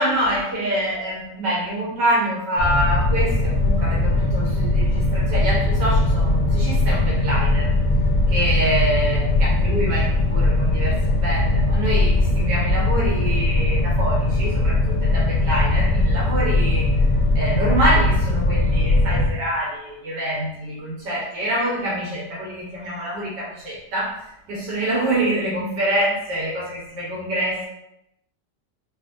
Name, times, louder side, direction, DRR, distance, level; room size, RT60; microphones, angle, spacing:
voice 1, 0.0-7.8 8.3-16.9 17.3-27.7, right 1 dB, 80° right, -6 dB, 1.6 m, -25 dB
sound 1, 2.6-19.3, left 2 dB, 60° left, 0.9 m, -20 dB
4.1 x 2.5 x 2.5 m, 0.83 s
omnidirectional pair, 1.9 m